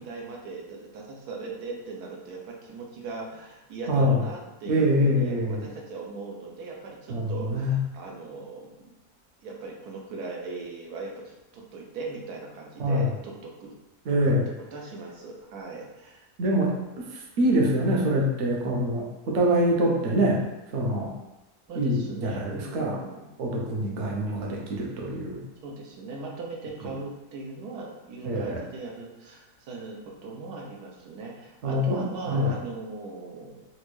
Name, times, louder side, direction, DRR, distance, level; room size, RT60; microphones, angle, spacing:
voice 1, 0.0-8.9 9.4-13.7 14.3-14.4 14.7-16.3 21.7-23.3 24.3-24.5 25.6-33.6, right 3 dB, 85° right, -1 dB, 1.2 m, -39 dB
voice 2, 4.7-5.6 7.1-7.8 12.8-13.1 14.1-14.5 16.4-17.0 17.4-20.4 20.7-21.1 21.8-23.0 23.4-25.4 28.2-28.6 31.6-32.0 32.3-32.5, equal, 60° right, -1 dB, 0.9 m, -24 dB
4.2 x 2.2 x 3.0 m, 0.99 s
omnidirectional pair, 1.6 m